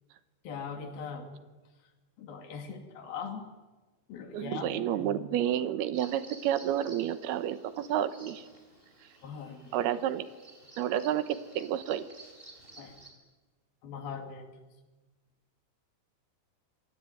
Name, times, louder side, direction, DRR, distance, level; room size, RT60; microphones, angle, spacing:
voice 1, 0.4-1.4 2.2-3.5 4.1-5.2 9.2-9.6 12.8-12.9 13.8-14.6, left 6 dB, 70° left, 5 dB, 4.4 m, -41 dB
voice 2, 4.3-8.4 9.7-10.3 10.8-12.1, right 11 dB, 80° right, 12 dB, 3.0 m, -30 dB
Bird vocalization bird call bird song, 5.9-13.1, right 2 dB, 15° right, 4.4 m, -53 dB
26.0 x 20.5 x 9.4 m, 1.2 s
omnidirectional pair, 4.6 m